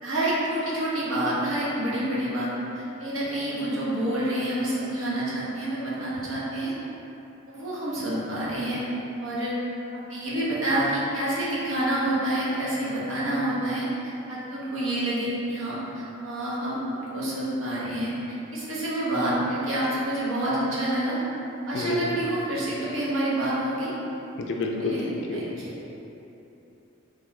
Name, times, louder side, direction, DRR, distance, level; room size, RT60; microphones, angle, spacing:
voice 1, 0.0-6.7 7.5-8.8 9.2-9.5 10.1-18.1 18.5-21.2 21.7-23.9 24.8-25.0 25.3-25.7, right 1 dB, 70° right, -8 dB, 0.9 m, -28 dB
voice 2, 21.7-22.2 24.4-25.5, left 2 dB, 55° left, 1 dB, 0.4 m, -29 dB
3.3 x 2.9 x 3.6 m, 3.0 s
head